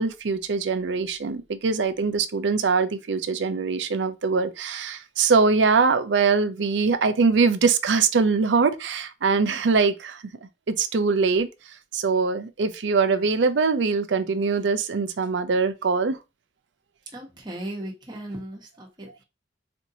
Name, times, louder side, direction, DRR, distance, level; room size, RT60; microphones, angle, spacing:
voice 1, 0.0-10.2 10.7-11.5 11.9-16.2, right 4 dB, 85° right, 0.5 m, -22 dB
voice 2, 9.4-9.8 17.1-19.2, right 1 dB, 25° right, 1.1 m, -37 dB
4.3 x 2.6 x 2.7 m
head